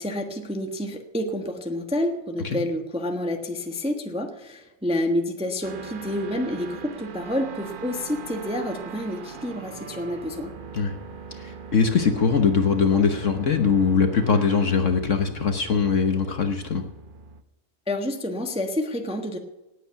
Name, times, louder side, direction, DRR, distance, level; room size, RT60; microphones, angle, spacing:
voice 1, 0.0-10.5 17.9-19.4, left 1 dB, 5° right, 4 dB, 0.9 m, -29 dB
sound 1, 5.6-17.4, right 5 dB, 50° right, 0.6 m, -41 dB
voice 2, 11.3-16.9, left 5 dB, 50° left, 6 dB, 1.2 m, -22 dB
18.5 x 8.3 x 5.9 m, 0.99 s
omnidirectional pair, 1.9 m